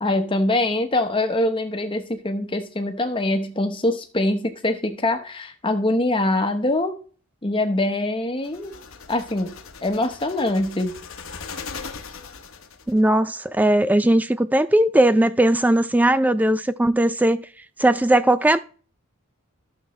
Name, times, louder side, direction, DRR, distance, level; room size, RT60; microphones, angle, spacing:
voice 1, 0.0-6.9 7.4-8.7 9.1-9.5 9.8-10.9, left 1 dB, 25° left, 1.0 m, -23 dB
Preditor Drone Fly By, 8.4-13.0, left 5 dB, 65° left, 0.9 m, -39 dB
voice 2, 12.9-17.4 17.8-18.6, right 1 dB, 5° right, 0.3 m, -18 dB
12.0 x 7.0 x 3.1 m
head